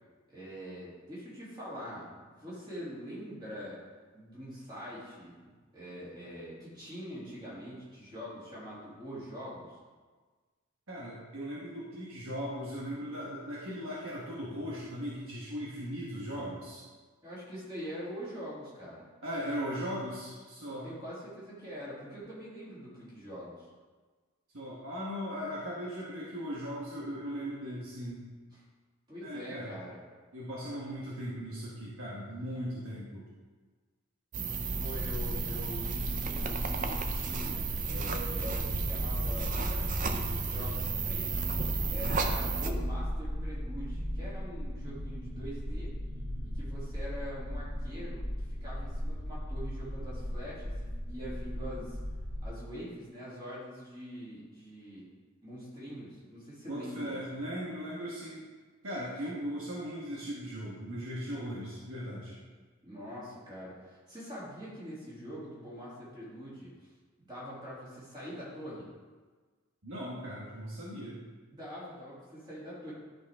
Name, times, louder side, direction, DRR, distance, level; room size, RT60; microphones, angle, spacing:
voice 1, 0.3-3.8 4.1-5.4 5.7-9.8 17.2-19.1 20.6-23.6 29.1-30.0 34.8-41.3 41.9-45.9 46.4-52.0 52.4-55.1 55.4-57.5 62.8-66.7 67.2-68.9 71.5-72.9, equal, 20° right, -9 dB, 2.7 m, -44 dB
voice 2, 10.9-16.8 19.2-20.9 24.5-28.2 29.2-29.8 30.3-33.3 42.2-42.4 56.7-58.4 58.8-62.4 69.8-71.2, equal, 60° right, -6 dB, 1.3 m, -38 dB
sound 1, 34.3-42.7, right 5 dB, 35° right, 0.5 m, -34 dB
sound 2, 34.5-52.4, equal, 80° right, 2.5 m, -36 dB
11.0 x 5.2 x 3.6 m, 1.4 s
head